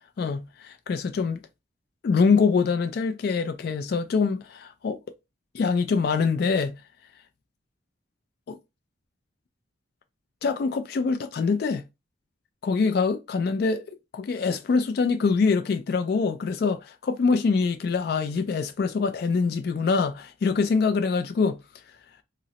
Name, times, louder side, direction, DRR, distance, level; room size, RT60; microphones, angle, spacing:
voice 1, 0.2-1.4 2.0-5.0 5.5-6.8 8.5-8.6 10.4-11.8 12.6-21.6, left 4 dB, 55° left, 0.3 m, -24 dB
3.7 x 2.0 x 2.8 m
head